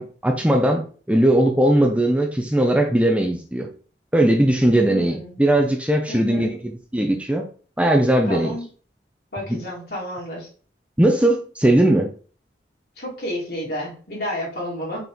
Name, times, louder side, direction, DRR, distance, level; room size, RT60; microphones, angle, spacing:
voice 1, 0.0-3.7 4.1-6.6 6.9-7.5 7.8-8.5 9.5-9.6 11.0-12.1, right 1 dB, 5° right, 0.7 m, -19 dB
voice 2, 4.9-5.3 6.1-6.5 8.3-8.7 9.3-10.5 13.0-15.0, equal, 60° left, 3.3 m, -30 dB
5.9 x 4.4 x 3.6 m
head